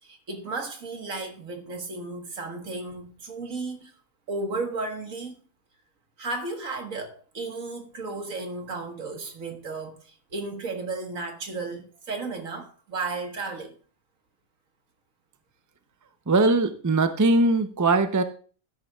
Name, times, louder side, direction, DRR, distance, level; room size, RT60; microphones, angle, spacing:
voice 1, 0.0-3.9 4.3-5.3 6.2-13.8, right 3 dB, 75° right, 2.0 m, -34 dB
voice 2, 16.3-18.2, right 2 dB, 20° right, 0.6 m, -21 dB
12.5 x 10.5 x 2.4 m
omnidirectional pair, 1.4 m